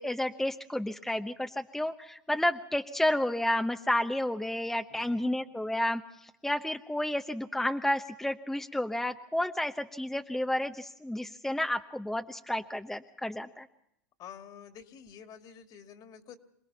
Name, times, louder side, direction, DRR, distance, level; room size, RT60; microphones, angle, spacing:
voice 1, 0.0-13.7, left 1 dB, 5° left, 6 dB, 1.0 m, -31 dB
voice 2, 4.9-5.3 14.2-16.4, left 8 dB, 45° left, 6 dB, 2.7 m, -49 dB
27.0 x 19.0 x 5.8 m, 0.77 s
hypercardioid pair, 90°, 10 cm